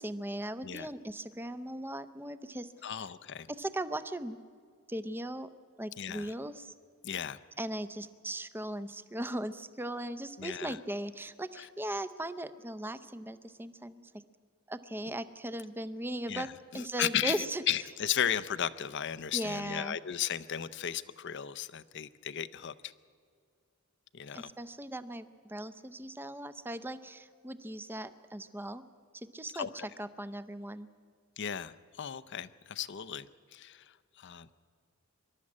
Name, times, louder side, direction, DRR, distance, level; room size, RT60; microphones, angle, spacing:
voice 1, 0.0-2.7 3.5-4.4 4.9-5.5 5.8-6.7 7.6-14.1 14.7-16.5 16.7-17.6 19.3-20.0 24.3-28.8 29.1-30.9, right 1 dB, 10° right, 13 dB, 0.6 m, -38 dB
voice 2, 2.8-3.5 6.0-6.3 7.0-7.4 10.4-10.8 11.6-11.7 16.3-22.9 24.1-24.5 29.5-29.7 31.4-34.5, left 9 dB, 55° left, 15 dB, 0.6 m, -35 dB
25.0 x 12.5 x 8.6 m, 2.2 s
head